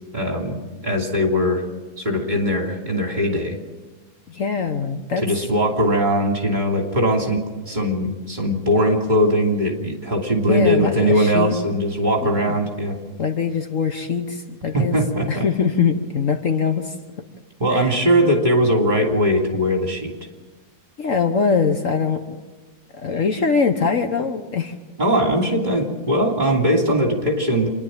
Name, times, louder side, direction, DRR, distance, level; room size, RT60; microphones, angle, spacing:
voice 1, 0.1-1.6 2.0-3.6 5.2-13.0 14.7-15.4 17.6-20.1 25.0-27.7, equal, 30° right, 1 dB, 3.0 m, -20 dB
voice 2, 4.3-5.2 10.5-11.5 12.2-12.6 13.2-15.0 15.3-16.9 17.7-17.9 21.0-22.4 22.9-24.7, left 5 dB, 55° left, 6 dB, 1.4 m, -22 dB
27.0 x 11.0 x 8.9 m, 1.3 s
omnidirectional pair, 1.7 m